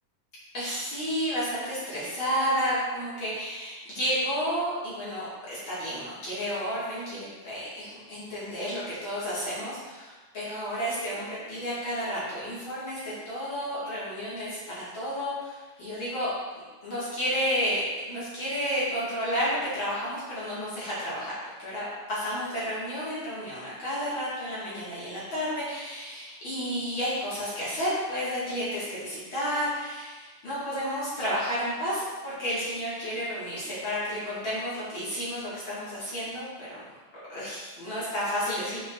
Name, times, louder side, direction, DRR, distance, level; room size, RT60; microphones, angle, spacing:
voice 1, 0.5-16.3 16.8-21.3 21.6-36.9 37.3-38.8, equal, 35° left, -10 dB, 3.0 m, -31 dB
9.0 x 4.5 x 3.9 m, 1.3 s
omnidirectional pair, 3.9 m